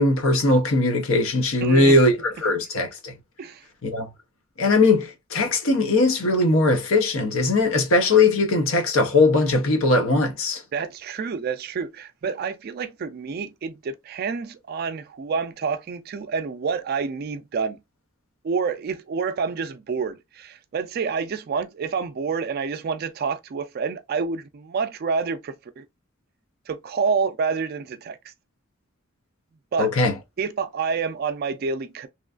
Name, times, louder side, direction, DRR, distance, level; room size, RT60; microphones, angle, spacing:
voice 1, 0.0-3.1 3.8-4.1 4.6-10.6 29.8-30.1, left 2 dB, 80° left, 0.7 m, -20 dB
voice 2, 1.6-2.0 3.4-3.6 10.7-17.8 18.4-25.9 26.7-28.2 29.7-29.9 30.4-32.1, right 5 dB, 50° right, 0.3 m, -28 dB
3.0 x 2.3 x 2.3 m
head